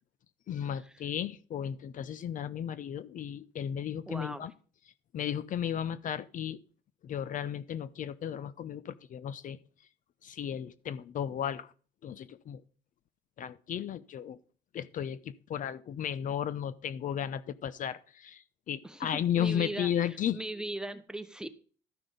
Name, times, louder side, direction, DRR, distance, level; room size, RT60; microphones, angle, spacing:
voice 1, 0.5-4.5 5.1-6.6 7.0-9.6 10.2-11.7 12.0-12.6 13.4-14.4 14.7-20.4, left 9 dB, 50° left, 16 dB, 0.7 m, -34 dB
voice 2, 4.1-4.4 18.8-21.5, right 1 dB, 5° right, 10 dB, 1.0 m, -39 dB
13.0 x 6.0 x 5.2 m, 0.40 s
cardioid pair, 110°, 17 cm